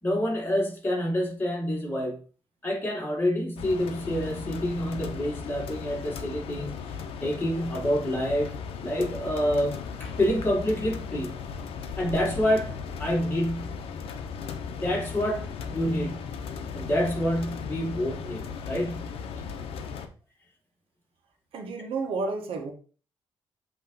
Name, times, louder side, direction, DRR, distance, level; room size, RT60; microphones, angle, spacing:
voice 1, 0.0-2.2 2.6-6.8 7.2-8.5 8.8-11.3 12.0-12.7 13.0-13.8 14.7-16.2 16.7-19.1, equal, 20° left, 3.0 m, -27 dB
sound 1, 3.6-20.1, left 6 dB, 85° left, 0.8 m, -37 dB
voice 2, 21.5-22.7, right 3 dB, 75° right, 1.4 m, -31 dB
7.8 x 3.2 x 3.9 m
cardioid pair, 100°, 10 cm